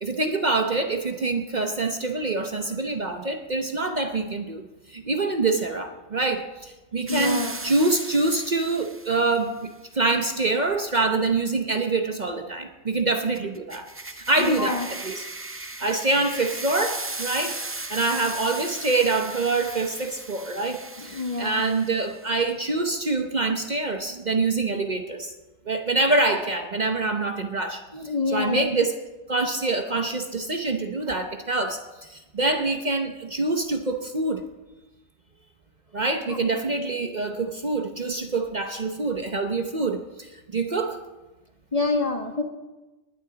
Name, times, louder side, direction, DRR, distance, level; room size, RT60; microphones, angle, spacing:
voice 1, 0.0-15.2 15.8-25.3 25.7-27.8 28.3-29.0 29.3-31.8 32.1-34.4 35.9-41.0, right 3 dB, 40° right, 6 dB, 1.0 m, -25 dB
voice 2, 7.1-7.6 14.4-14.9 21.0-21.6 27.9-28.7 36.2-36.4 41.7-42.4, left 3 dB, 30° left, 4 dB, 1.5 m, -27 dB
sound 1, 7.1-9.4 13.3-22.3, right 2 dB, 15° right, 0.4 m, -37 dB
20.0 x 11.5 x 4.0 m, 1.1 s
omnidirectional pair, 1.2 m